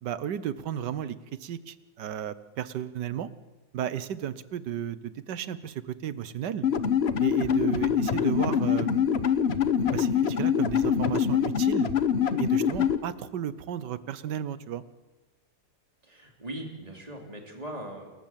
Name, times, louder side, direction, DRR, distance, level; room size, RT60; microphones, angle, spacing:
voice 1, 0.0-3.3 3.7-6.7 7.2-9.0 9.9-11.9 12.4-14.8, right 9 dB, 70° right, 15 dB, 1.5 m, -33 dB
sound 1, 6.6-13.0, left 7 dB, 45° left, 1.0 m, -24 dB
voice 2, 16.0-18.1, right 1 dB, 20° right, 2 dB, 3.4 m, -40 dB
28.5 x 14.0 x 7.5 m, 1.2 s
omnidirectional pair, 2.0 m